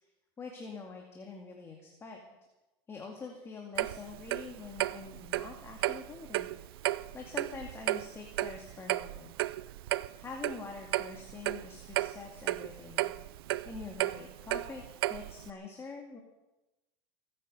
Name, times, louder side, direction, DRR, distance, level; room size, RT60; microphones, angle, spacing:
voice 1, 0.4-2.2 2.9-9.3 10.2-13.1 13.7-14.8 15.1-16.2, left 4 dB, 20° left, 1 dB, 2.2 m, -45 dB
Clock, 3.8-15.5, right 16 dB, 90° right, 0.5 m, -34 dB
23.5 x 9.9 x 5.5 m, 1.0 s
supercardioid pair, 130°, 12 cm